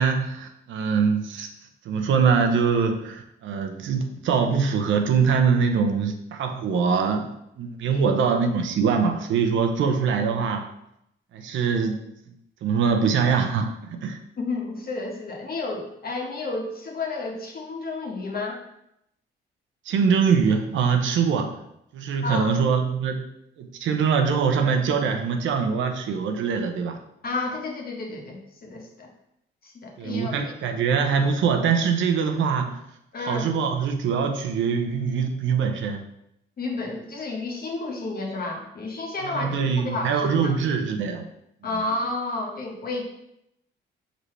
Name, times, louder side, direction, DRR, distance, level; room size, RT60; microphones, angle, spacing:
voice 1, 0.0-1.5 1.8-7.3 7.6-10.6 11.3-12.0 12.6-14.2 19.8-21.6 21.9-23.2 23.6-27.0 30.0-32.8 33.2-36.0 39.2-41.2, right 6 dB, 75° right, 5 dB, 0.9 m, -23 dB
voice 2, 14.4-18.6 22.2-22.5 27.2-29.1 29.6-30.5 33.1-33.5 36.6-39.5 39.8-40.5 41.6-43.0, left 3 dB, 50° left, 0 dB, 1.6 m, -31 dB
6.0 x 5.2 x 3.3 m, 0.79 s
cardioid pair, 90°, 20 cm